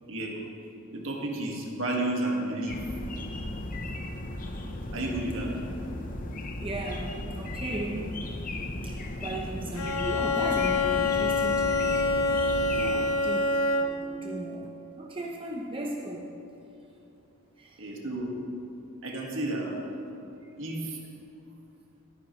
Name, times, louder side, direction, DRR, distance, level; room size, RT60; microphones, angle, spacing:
voice 1, 0.1-0.4 0.9-2.8 4.9-5.6 12.7-13.1 17.8-18.3 19.0-19.8 20.6-21.0, right 1 dB, 65° right, -1 dB, 2.0 m, -32 dB
sound 1, 2.7-13.0, left 1 dB, 40° left, 0.9 m, -36 dB
voice 2, 6.4-8.2 8.8-12.1 12.8-16.3 17.6-17.8, right 1 dB, 25° right, -2 dB, 0.9 m, -36 dB
Bowed string instrument, 9.7-14.2, left 3 dB, 70° left, 0.9 m, -26 dB
21.5 x 9.7 x 3.2 m, 2.8 s
head